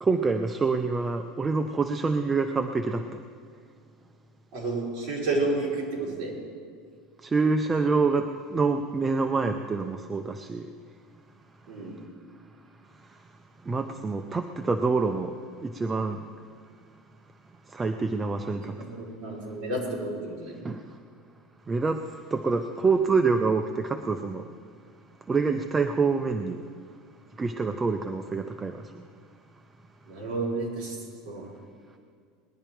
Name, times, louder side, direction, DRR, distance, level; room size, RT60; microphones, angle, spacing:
voice 1, 0.0-3.2 7.2-10.7 13.1-13.2 13.6-16.2 17.7-18.9 20.6-20.8 21.7-24.5 25.3-26.6 27.4-29.0, right 4 dB, 10° right, 6 dB, 0.4 m, -26 dB
voice 2, 4.5-6.3 11.7-12.0 18.8-20.6 30.1-31.0 31.2-31.4, right 2 dB, 35° right, -6 dB, 4.7 m, -31 dB
20.0 x 11.0 x 4.5 m, 2.1 s
cardioid pair, 180°, 0 cm